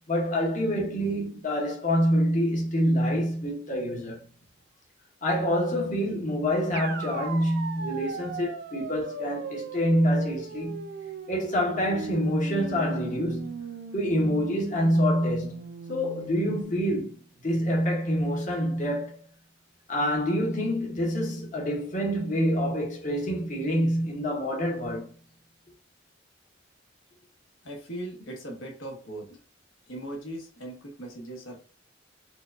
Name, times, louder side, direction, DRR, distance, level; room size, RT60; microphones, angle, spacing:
voice 1, 0.1-4.2 5.2-10.9 11.3-13.6 13.9-15.6 15.9-19.2 19.9-25.1, equal, 40° left, 0.9 m, -26 dB
sound 1, 6.7-16.6, right 4 dB, 55° right, 0.4 m, -38 dB
voice 2, 27.6-29.3 29.9-31.6, right 1 dB, 85° left, 1.0 m, -39 dB
4.4 x 2.2 x 2.5 m
head